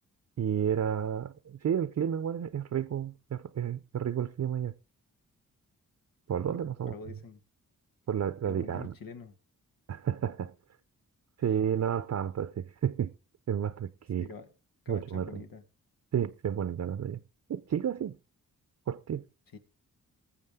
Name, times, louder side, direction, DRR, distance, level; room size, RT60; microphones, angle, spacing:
voice 1, 0.4-4.7 6.3-6.9 8.1-8.9 9.9-10.5 11.4-13.1 13.5-14.3 14.9-15.4 16.1-17.2 17.5-18.2 18.9-19.2, right 9 dB, 55° right, 0.7 m, -31 dB
voice 2, 6.5-7.4 8.4-9.3 11.4-11.5 14.2-14.5 14.8-15.6 19.5-19.6, left 4 dB, 90° left, 1.7 m, -46 dB
20.5 x 7.3 x 3.6 m
cardioid pair, 80°, 33 cm